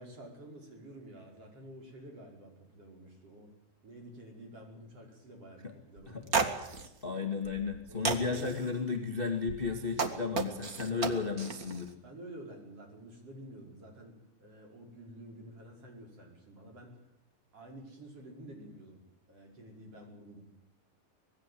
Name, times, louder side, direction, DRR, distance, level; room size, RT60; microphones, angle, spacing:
voice 1, 0.0-3.5 3.8-6.4 7.9-8.8 10.5-11.0 12.0-17.0 17.5-19.0 19.3-20.4, right 1 dB, 35° right, 1 dB, 6.1 m, -50 dB
sound 1, 6.0-6.1 6.3-6.9 7.4-7.8 8.0-8.6 9.5-11.8, right 4 dB, 65° right, 0.8 m, -32 dB
voice 2, 7.0-11.9, left 5 dB, 30° left, 4 dB, 0.9 m, -34 dB
25.5 x 20.0 x 7.8 m, 0.85 s
omnidirectional pair, 4.8 m